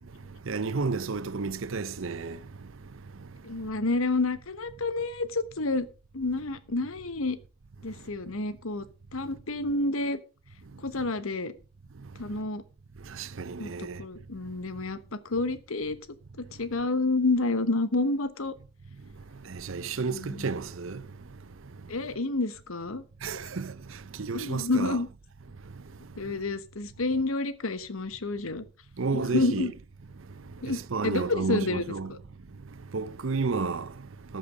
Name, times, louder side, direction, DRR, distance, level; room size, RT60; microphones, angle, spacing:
voice 1, 0.2-3.3 12.0-12.1 13.0-14.0 19.3-21.4 21.7-21.9 23.2-25.0 25.6-26.4 29.0-29.7 30.3-32.1 32.7-34.4, right 4 dB, 65° right, 0.7 m, -33 dB
voice 2, 3.4-5.9 6.1-7.4 7.8-8.9 9.1-10.2 10.8-11.5 12.2-12.6 13.6-16.0 16.4-18.5 20.1-20.5 21.9-23.0 24.3-25.1 26.2-28.6 29.1-29.7 30.6-32.2, left 2 dB, 75° left, 1.1 m, -29 dB
13.5 x 7.6 x 5.1 m
head